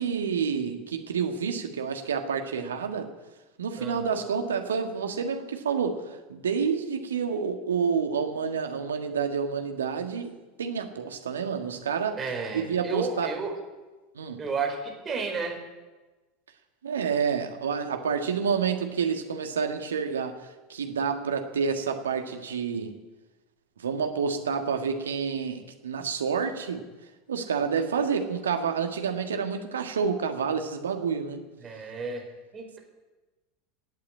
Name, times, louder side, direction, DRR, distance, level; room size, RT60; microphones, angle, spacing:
voice 1, 0.0-3.1 3.6-6.0 6.3-10.3 10.6-12.2 12.5-13.3 14.1-14.4 16.8-23.0 23.8-26.9 27.3-31.4, right 6 dB, 70° right, 5 dB, 1.6 m, -29 dB
voice 2, 3.8-4.2 12.2-13.5 14.4-15.6 31.6-32.2 32.5-32.8, right 4 dB, 25° right, 1 dB, 4.8 m, -32 dB
17.5 x 8.6 x 8.6 m, 1.2 s
figure-of-eight pair, 80°, 0 cm